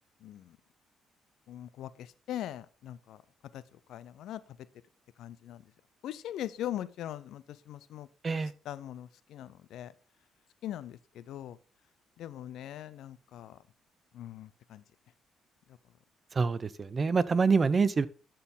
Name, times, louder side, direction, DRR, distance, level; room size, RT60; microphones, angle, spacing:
voice 1, 1.5-1.9 2.3-3.2 3.5-3.6 3.9-4.4 5.2-5.6 6.0-8.1 8.7-9.9 10.6-11.6 12.2-13.6 14.1-14.8, left 12 dB, 80° left, 17 dB, 0.5 m, -40 dB
voice 2, 16.4-18.1, right 4 dB, 35° right, 17 dB, 0.5 m, -26 dB
12.5 x 4.4 x 3.7 m, 0.37 s
cardioid pair, 90°, 0 cm